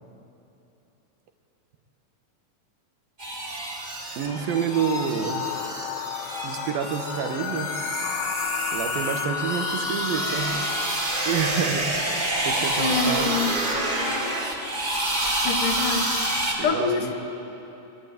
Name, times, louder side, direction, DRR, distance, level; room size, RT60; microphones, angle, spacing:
sound 1, 3.2-16.5, right 1 dB, 15° right, 1.6 m, -28 dB
voice 1, 4.2-5.5 6.4-7.7 8.7-10.6 11.3-11.9 12.4-13.4 16.6-17.1, right 7 dB, 80° right, 6 dB, 3.0 m, -28 dB
sound 2, 4.3-10.9, left 8 dB, 90° left, 2.6 m, -32 dB
voice 2, 12.8-13.5 15.4-17.1, left 5 dB, 65° left, 5 dB, 2.6 m, -26 dB
25.0 x 11.5 x 9.4 m, 3.0 s
omnidirectional pair, 4.1 m